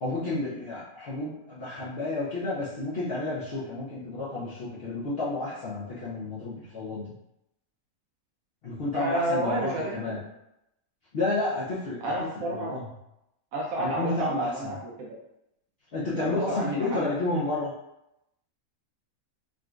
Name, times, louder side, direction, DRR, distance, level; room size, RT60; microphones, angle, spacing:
voice 1, 0.0-7.1 8.6-10.2 11.1-12.1 12.5-12.8 13.8-14.7 15.9-17.7, left 2 dB, 55° left, -9 dB, 0.7 m, -31 dB
voice 2, 8.9-10.2 12.0-12.7 13.5-15.2 16.1-17.1, right 1 dB, 75° right, -3 dB, 1.0 m, -30 dB
3.7 x 2.2 x 2.4 m, 0.85 s
omnidirectional pair, 1.5 m